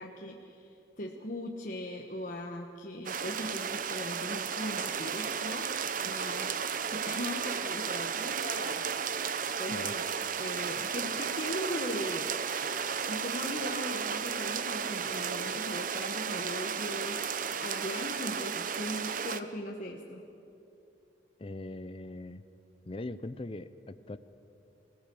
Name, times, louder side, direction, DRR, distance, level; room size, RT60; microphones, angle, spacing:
voice 1, 0.0-5.7 6.0-6.5 6.9-8.8 9.6-10.0 10.4-12.3 13.1-17.2 17.6-20.2, left 1 dB, 45° left, 1 dB, 1.3 m, -39 dB
sound 1, 3.1-19.4, right 7 dB, 45° right, 0.7 m, -34 dB
voice 2, 21.4-22.4 22.9-24.2, left 2 dB, 30° left, 13 dB, 0.6 m, -40 dB
26.0 x 17.5 x 7.0 m, 2.7 s
head